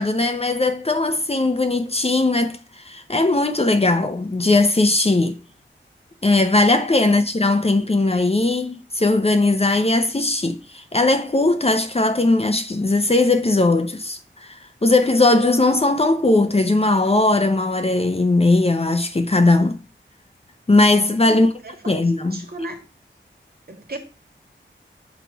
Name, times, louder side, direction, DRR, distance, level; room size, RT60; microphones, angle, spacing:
voice 1, 0.0-2.6 2.9-5.4 6.2-14.5 14.8-19.8 20.7-21.5 21.9-22.4, left 2 dB, 30° left, 0.7 m, -19 dB
voice 2, 21.3-22.0 22.3-22.9 23.7-24.0, right 1 dB, 50° right, 1.7 m, -35 dB
6.1 x 4.8 x 4.6 m
wide cardioid pair, 95°, 20 cm